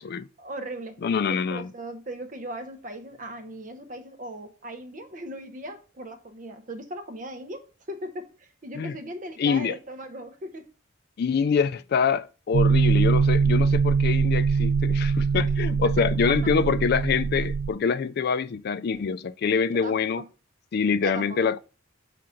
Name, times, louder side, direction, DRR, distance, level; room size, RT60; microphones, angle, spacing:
voice 1, 0.4-1.0 1.3-10.7 19.7-20.2 21.0-21.5, right 1 dB, 40° right, 0.8 m, -38 dB
voice 2, 1.0-1.7 8.7-9.0 9.4-9.7 11.2-20.2 20.7-21.6, left 6 dB, 50° left, 0.3 m, -25 dB
sound 1, 12.5-17.7, right 5 dB, 85° right, 0.3 m, -22 dB
5.0 x 3.8 x 5.7 m
head